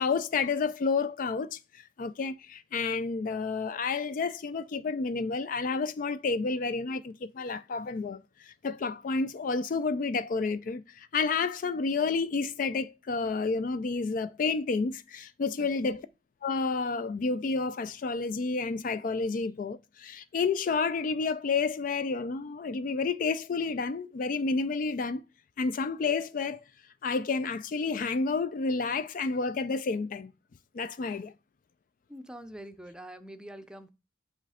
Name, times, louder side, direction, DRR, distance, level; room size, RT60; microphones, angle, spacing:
voice 1, 0.0-16.0 16.4-25.2 25.6-26.6 27.0-30.3 30.7-31.3, left 4 dB, 50° left, 0.4 m, -30 dB
voice 2, 15.6-16.0 32.1-33.9, right 1 dB, 5° right, 0.6 m, -45 dB
8.1 x 3.1 x 4.9 m
head